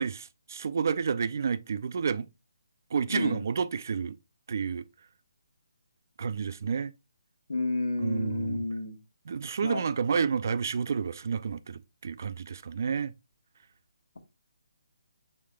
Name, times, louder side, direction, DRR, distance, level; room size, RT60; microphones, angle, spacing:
voice 1, 0.0-2.3 2.9-4.2 4.5-4.9 6.2-6.9 8.0-8.6 9.3-13.1, right 6 dB, 50° right, 0.3 m, -30 dB
voice 2, 3.1-3.4 7.5-9.0 9.6-9.8, left 2 dB, 90° left, 1.2 m, -30 dB
6.9 x 3.3 x 2.2 m
hypercardioid pair, 170°, 2 cm